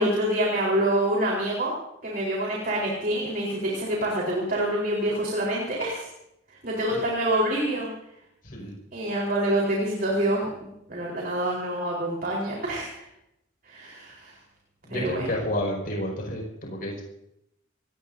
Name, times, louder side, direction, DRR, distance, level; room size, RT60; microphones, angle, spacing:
voice 1, 0.0-1.7 2.0-6.1 6.6-7.9 8.9-10.5 10.9-13.0 13.6-14.3 14.9-15.3, right 1 dB, 50° right, -3 dB, 4.2 m, -26 dB
voice 2, 14.8-17.0, equal, 45° left, -2 dB, 5.7 m, -30 dB
28.5 x 18.5 x 2.7 m, 0.81 s
head